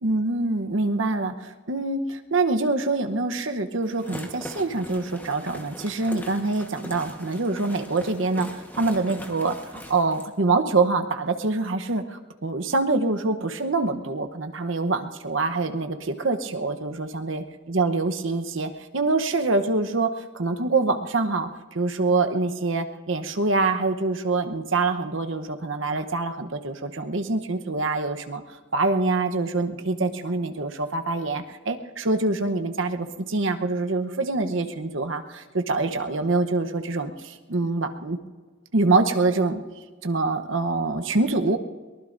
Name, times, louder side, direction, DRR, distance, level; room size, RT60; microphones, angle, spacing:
voice 1, 0.0-28.4 28.7-38.2 38.7-39.6 40.0-41.6, right 3 dB, 70° right, 7 dB, 0.9 m, -25 dB
sound 1, 3.8-10.3, left 1 dB, 10° left, 1.3 m, -41 dB
23.0 x 19.0 x 2.6 m, 1.4 s
head